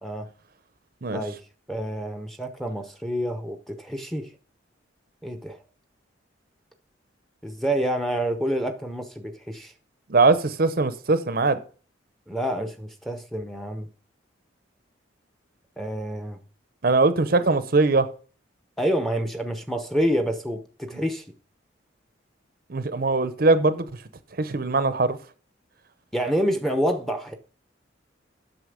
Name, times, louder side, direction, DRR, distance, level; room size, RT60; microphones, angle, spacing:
voice 1, 1.7-4.3 5.2-5.6 7.4-9.7 12.3-13.9 15.8-16.4 18.8-21.2 26.1-27.4, equal, ahead, 0.8 m, -28 dB
voice 2, 10.1-11.6 16.8-18.1 20.9-21.0 22.7-23.9 24.4-25.2, right 3 dB, 50° right, 0.7 m, -21 dB
8.0 x 6.2 x 5.1 m
head